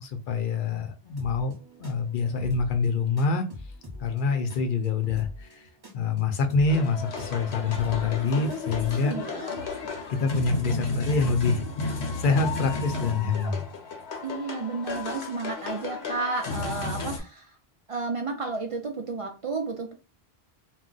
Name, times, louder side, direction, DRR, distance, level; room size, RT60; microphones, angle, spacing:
voice 1, 0.0-1.5 1.8-3.5 4.0-5.6 5.9-9.1 10.1-11.6 12.2-13.6, left 4 dB, 60° left, 0.7 m, -26 dB
sound 1, 1.1-9.1, left 1 dB, 25° right, 0.7 m, -44 dB
sound 2, 6.7-17.2, left 3 dB, 80° left, 1.0 m, -33 dB
voice 2, 9.1-9.6 14.2-17.6 17.9-19.9, right 3 dB, 60° right, 0.3 m, -32 dB
2.3 x 2.1 x 3.8 m
omnidirectional pair, 1.1 m